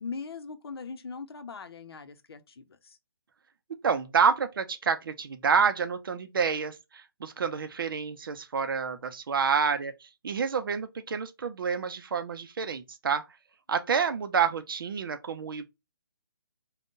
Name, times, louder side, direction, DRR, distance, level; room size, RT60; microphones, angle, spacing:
voice 1, 0.0-3.0, left 5 dB, 70° left, 0.6 m, -40 dB
voice 2, 3.8-13.2 13.7-15.7, right 6 dB, 60° right, 0.5 m, -28 dB
3.5 x 2.2 x 2.6 m
hypercardioid pair, 160°, 13 cm